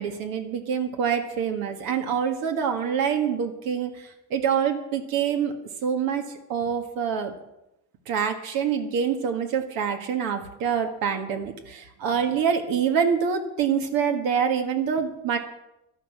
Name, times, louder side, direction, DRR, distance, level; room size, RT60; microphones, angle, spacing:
voice 1, 0.0-3.9 4.3-5.5 5.8-7.3 8.1-15.4, right 7 dB, 80° right, 5 dB, 1.8 m, -26 dB
12.0 x 11.5 x 7.2 m, 0.87 s
cardioid pair, 115°, 35 cm